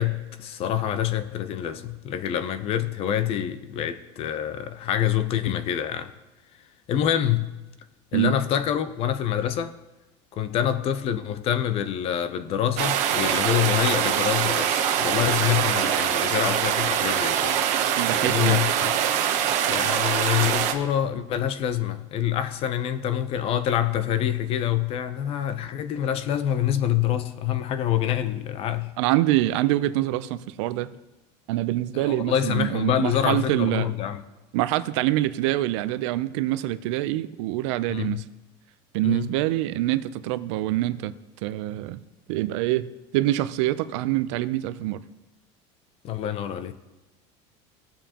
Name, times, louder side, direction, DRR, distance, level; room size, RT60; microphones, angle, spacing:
voice 1, 0.0-6.1 6.9-7.5 8.1-9.7 10.3-17.6 18.1-18.9 19.7-28.9 31.9-34.2 37.9-38.2 39.0-39.2 46.0-46.7, left 10 dB, 40° left, 0.7 m, -26 dB
sound 1, 12.8-20.7, right 9 dB, 50° right, 1.0 m, -23 dB
voice 2, 18.0-18.6 29.0-30.9 31.5-33.9 34.5-38.2 38.9-41.1 41.4-42.0 42.3-42.9 43.1-45.0, right 15 dB, 75° right, 0.6 m, -25 dB
17.0 x 7.1 x 2.9 m
cardioid pair, 150°, 15 cm